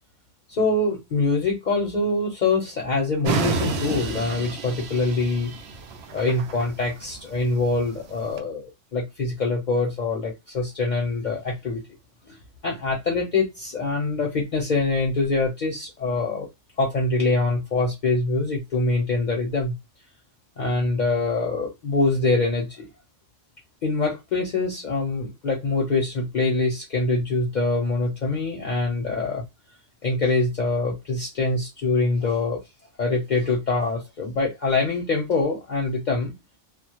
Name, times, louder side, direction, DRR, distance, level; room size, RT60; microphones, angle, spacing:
voice 1, 0.5-5.5 6.1-11.8 12.3-12.4 12.6-16.5 16.8-19.7 20.6-22.9 23.8-29.4 30.0-32.6 33.0-36.3, left 3 dB, 50° left, 0.7 m, -24 dB
sound 1, 3.3-8.4, right 4 dB, 70° right, 0.8 m, -30 dB
2.1 x 2.0 x 2.8 m
omnidirectional pair, 1.2 m